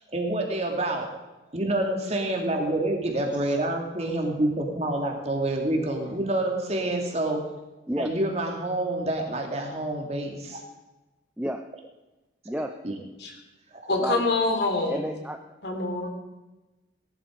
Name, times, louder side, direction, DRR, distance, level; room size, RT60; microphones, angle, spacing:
voice 1, 0.1-1.1 1.5-7.4 7.9-10.6 12.8-12.9, right 1 dB, 35° right, 1 dB, 2.6 m, -27 dB
voice 2, 12.4-12.7 14.0-14.2 14.9-15.6, equal, 5° right, 5 dB, 0.6 m, -31 dB
voice 3, 13.9-15.0 15.6-16.1, left 2 dB, 60° left, 3 dB, 2.8 m, -25 dB
18.5 x 11.5 x 5.2 m, 1.1 s
head